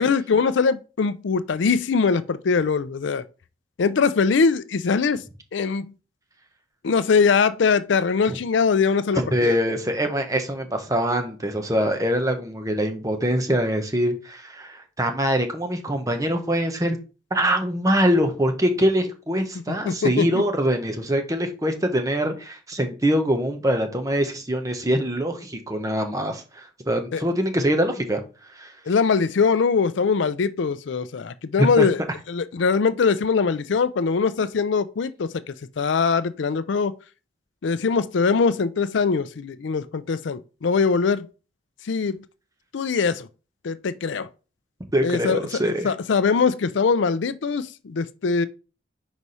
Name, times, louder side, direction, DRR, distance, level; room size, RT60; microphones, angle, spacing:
voice 1, 0.0-3.2 3.8-5.2 5.5-5.9 6.8-9.6 19.7-20.3 27.1-27.2 28.9-32.0 32.3-35.3 35.8-36.9 37.6-41.3 41.8-42.2 42.7-43.3 43.6-44.3 45.0-45.4 45.8-48.5, left 5 dB, 70° left, 0.4 m, -22 dB
voice 2, 9.1-17.0 17.3-28.2 28.5-28.7 31.6-31.9 44.9-45.9, equal, 15° right, 0.9 m, -23 dB
4.7 x 4.0 x 5.4 m
head